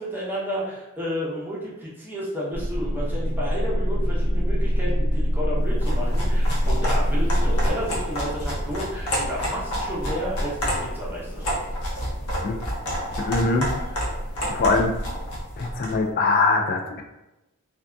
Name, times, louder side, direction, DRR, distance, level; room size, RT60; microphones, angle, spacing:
voice 1, 0.0-11.6, equal, 10° right, -7 dB, 0.7 m, -31 dB
sound 1, 2.5-7.7, equal, 80° right, 0.5 m, -23 dB
sound 2, 5.7-16.0, equal, 70° left, 0.8 m, -29 dB
voice 2, 13.2-13.7 14.5-14.9 15.6-17.0, left 3 dB, 45° left, 2 dB, 0.3 m, -22 dB
2.6 x 2.2 x 2.3 m, 0.98 s
head